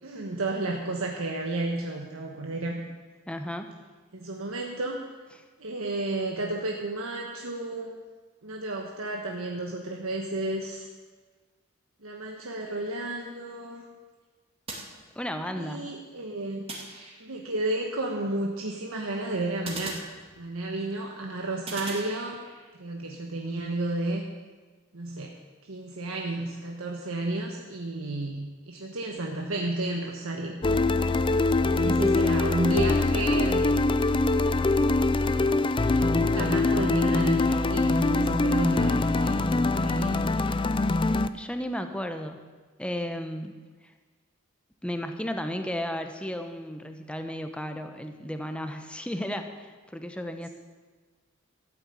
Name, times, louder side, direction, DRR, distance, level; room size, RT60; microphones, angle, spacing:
voice 1, 0.0-2.8 4.1-5.0 5.6-8.0 8.4-10.9 12.0-13.8 15.6-16.6 17.2-20.0 20.4-22.4 22.8-24.2 24.9-25.3 25.6-30.6 31.6-33.8 34.5-34.8 35.1-39.5 39.8-40.3, right 2 dB, 80° right, 0 dB, 1.4 m, -32 dB
voice 2, 3.3-3.7 15.1-15.9 31.8-32.2 41.3-42.4 42.8-43.6 44.8-50.5, equal, 5° left, 6 dB, 1.0 m, -34 dB
sound 1, 14.7-15.6 16.7-17.6 19.6-20.8 21.7-22.7, right 2 dB, 30° right, 2.3 m, -41 dB
sound 2, 30.6-41.3, left 2 dB, 25° left, 0.4 m, -23 dB
13.5 x 8.9 x 8.3 m, 1.4 s
head